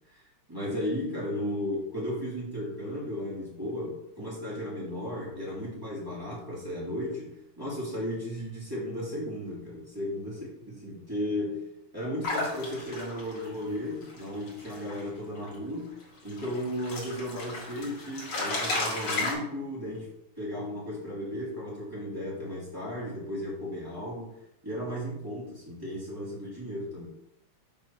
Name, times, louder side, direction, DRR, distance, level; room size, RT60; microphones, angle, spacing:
voice 1, 0.5-10.4 10.8-11.7 11.9-20.1 20.4-24.3 24.6-27.1, left 1 dB, 10° right, -7 dB, 2.7 m, -35 dB
sound 1, 12.2-15.0 15.4-15.6 16.0-19.3, left 2 dB, 85° left, 2.7 m, -34 dB
6.0 x 4.4 x 5.6 m, 0.82 s
omnidirectional pair, 2.4 m